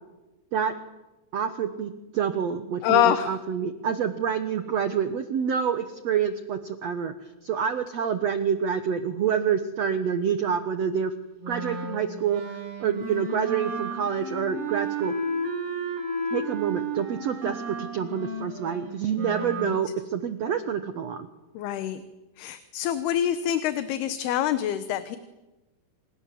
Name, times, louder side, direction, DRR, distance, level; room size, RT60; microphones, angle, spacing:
voice 1, 1.3-7.1 7.4-11.1 11.5-12.4 12.8-15.1 16.3-21.3, right 7 dB, 90° right, 10 dB, 1.4 m, -27 dB
voice 2, 2.8-3.3 19.6-19.7 21.5-22.0 22.4-25.2, left 11 dB, 75° left, 12 dB, 2.9 m, -25 dB
Wind instrument woodwind instrument, 11.4-19.7, right 1 dB, 70° right, 5.7 m, -33 dB
28.0 x 27.5 x 7.7 m, 1.1 s
omnidirectional pair, 4.8 m